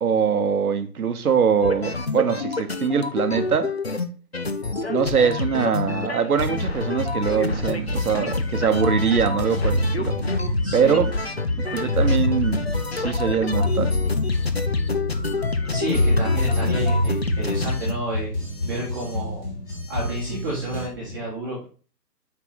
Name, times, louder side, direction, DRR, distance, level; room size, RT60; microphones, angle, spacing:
voice 1, 0.0-3.7 4.9-10.1 10.7-11.1 11.6-12.7 12.9-13.9, right 6 dB, 60° right, 1.0 m, -23 dB
sound 1, 1.6-4.1 4.3-17.9, left 3 dB, 40° left, 0.5 m, -27 dB
sound 2, 7.3-20.9, left 1 dB, 15° left, 1.3 m, -27 dB
voice 2, 10.6-11.0 15.7-18.3 18.6-19.5 19.9-21.6, right 1 dB, 10° right, 1.2 m, -30 dB
6.1 x 4.8 x 4.0 m
figure-of-eight pair, 155°, 50 cm